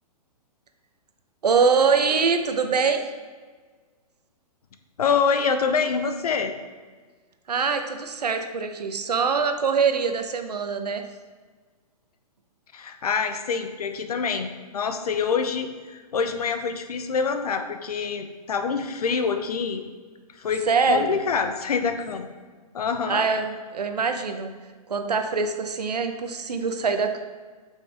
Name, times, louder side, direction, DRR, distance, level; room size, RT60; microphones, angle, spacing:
voice 1, 1.4-3.0 7.5-11.0 20.7-21.1 23.1-24.5 24.9-27.2, right 5 dB, 80° right, 6 dB, 0.9 m, -23 dB
voice 2, 5.0-6.5 12.7-19.8 20.4-22.3 22.7-23.3, left 5 dB, 70° left, 8 dB, 0.9 m, -26 dB
7.9 x 5.7 x 3.5 m, 1.4 s
hypercardioid pair, 125°, 20 cm